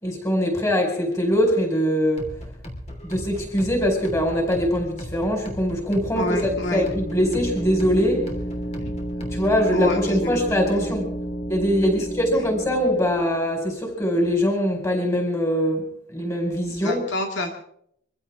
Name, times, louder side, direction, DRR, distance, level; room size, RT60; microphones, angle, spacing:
voice 1, 0.0-2.2 3.0-8.3 9.3-11.1 11.5-17.0, equal, 15° left, 1 dB, 4.9 m, -22 dB
sound 1, 2.2-9.7, equal, 35° left, 3.1 m, -37 dB
sound 2, 5.8-13.5, right 1 dB, 50° left, 1.6 m, -32 dB
voice 2, 6.1-6.8 9.7-10.4 10.7-11.0 12.0-12.1 16.7-17.5, left 1 dB, 70° left, 3 dB, 2.2 m, -28 dB
25.0 x 15.5 x 3.7 m, 0.69 s
head